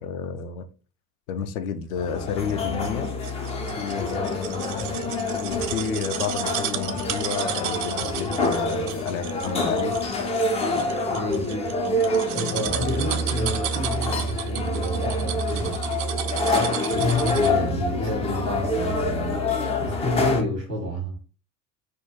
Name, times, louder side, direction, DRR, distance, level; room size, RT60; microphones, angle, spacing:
voice 1, 0.0-0.6 1.3-3.1 3.8-5.1 5.4-10.0 12.7-12.9, left 7 dB, 60° left, 0.6 m, -31 dB
sound 1, 2.0-20.4, left 2 dB, 15° left, 0.3 m, -26 dB
sound 2, 2.5-17.7 18.0-18.1, right 11 dB, 50° right, 0.4 m, -33 dB
voice 2, 11.0-11.7 12.3-15.8 16.5-19.4 19.8-21.2, left 1 dB, 85° right, 1.4 m, -29 dB
3.5 x 2.2 x 2.8 m
figure-of-eight pair, 65°, 48 cm